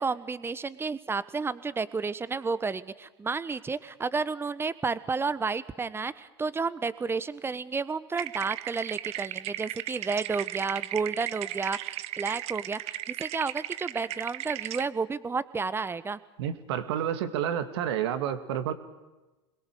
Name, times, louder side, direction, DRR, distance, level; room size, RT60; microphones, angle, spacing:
voice 1, 0.0-16.2, right 4 dB, 15° right, 16 dB, 1.2 m, -31 dB
sound 1, 8.2-14.9, right 15 dB, 45° right, 0.9 m, -36 dB
voice 2, 16.4-18.7, right 9 dB, 65° right, 9 dB, 2.3 m, -30 dB
27.0 x 21.5 x 6.8 m, 1.1 s
hypercardioid pair, 85°, 15 cm